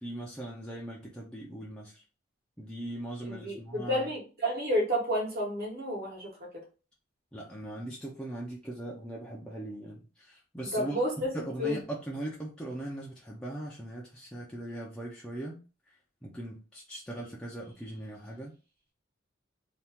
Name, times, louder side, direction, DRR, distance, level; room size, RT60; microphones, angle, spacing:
voice 1, 0.0-2.0 2.6-4.1 7.3-11.0 11.3-15.6 16.2-18.5, right 1 dB, 5° left, -4 dB, 0.5 m, -39 dB
voice 2, 3.2-6.5 10.6-11.3 11.6-11.8, equal, 55° right, -1 dB, 1.3 m, -31 dB
2.8 x 2.4 x 3.5 m, 0.35 s
head